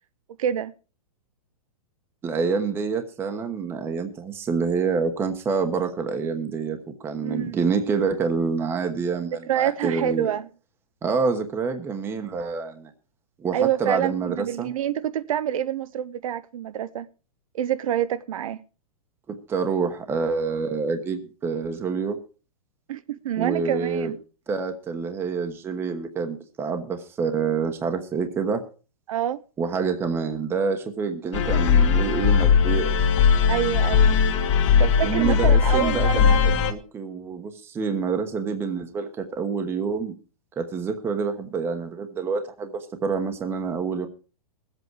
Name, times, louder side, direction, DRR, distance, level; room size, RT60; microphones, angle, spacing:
voice 1, 0.4-0.7 7.2-7.6 9.5-10.5 13.5-17.1 17.5-18.6 22.9-24.2 29.1-29.4 33.5-34.2 34.5-36.4, right 11 dB, 65° right, 0.7 m, -27 dB
voice 2, 2.2-6.8 7.0-10.3 11.0-12.9 13.4-14.7 19.3-22.2 23.4-24.1 24.5-28.6 29.6-32.9 35.0-40.2 40.6-44.1, right 5 dB, 10° right, 1.1 m, -27 dB
sound 1, 31.3-36.7, left 6 dB, 55° left, 2.1 m, -19 dB
20.0 x 8.1 x 4.7 m
hypercardioid pair, 160°, 19 cm